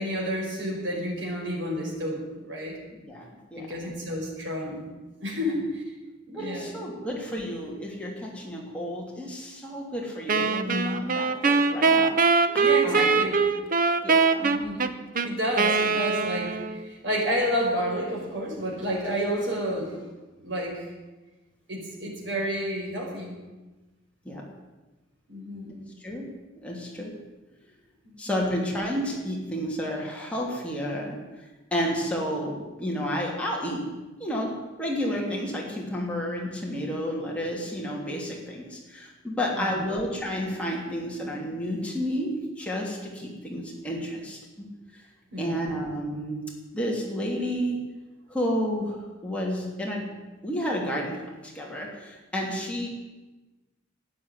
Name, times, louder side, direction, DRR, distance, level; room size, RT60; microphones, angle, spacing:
voice 1, 0.0-2.8 3.6-4.8 5.2-5.8 6.3-6.7 12.6-13.4 14.4-14.9 15.2-20.1 20.4-20.8 21.7-23.4 25.3-25.7 28.0-28.3 39.6-39.9 45.3-45.8, equal, 65° right, -2 dB, 5.2 m, -30 dB
voice 2, 2.9-3.7 6.3-12.2 12.8-13.1 14.0-14.5 24.2-24.4 26.0-26.3 26.6-27.1 28.2-31.2 31.7-33.9 34.2-34.5 34.8-44.4 45.4-46.4 46.7-47.8 48.3-49.0 49.2-50.1 50.4-51.2 51.4-52.9, equal, 5° left, -3 dB, 3.0 m, -31 dB
Wind instrument woodwind instrument, 10.3-16.9, right 4 dB, 45° right, 0.8 m, -23 dB
12.5 x 9.7 x 9.8 m, 1.1 s
head